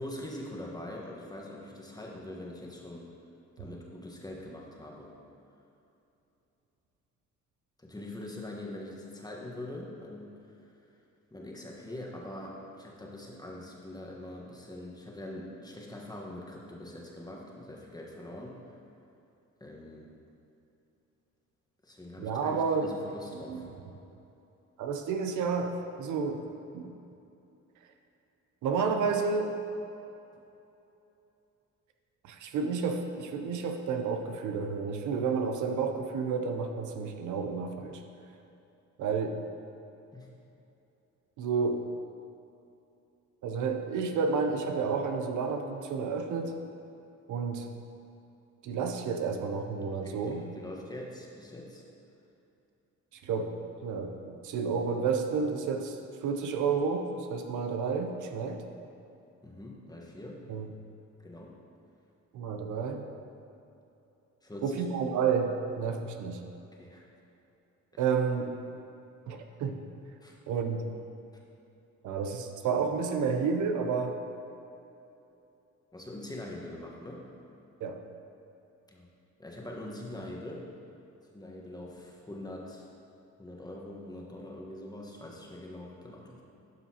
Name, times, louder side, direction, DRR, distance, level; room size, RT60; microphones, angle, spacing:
voice 1, 0.0-3.1 3.6-5.2 7.8-10.8 11.3-18.6 19.6-20.1 21.8-23.7 40.1-40.3 49.8-51.8 59.4-60.5 61.2-61.6 64.4-64.8 66.8-67.1 67.9-68.1 70.2-70.4 75.9-77.3 78.9-79.1 79.4-80.7 81.3-82.9 83.4-86.4, left 1 dB, 15° left, -2 dB, 1.2 m, -43 dB
voice 2, 22.2-22.9 23.5-23.6 24.8-26.5 26.7-26.9 28.6-29.5 32.2-38.0 39.0-39.4 41.4-41.9 43.4-46.6 47.3-47.7 48.6-50.4 53.1-53.5 53.8-58.6 60.5-60.7 62.3-63.0 64.6-66.4 68.0-68.5 69.3-69.8 70.5-70.9 72.0-74.2 77.8-78.0, right 5 dB, 75° right, 5 dB, 0.7 m, -30 dB
12.0 x 5.5 x 2.8 m, 2.8 s
cardioid pair, 90°, 30 cm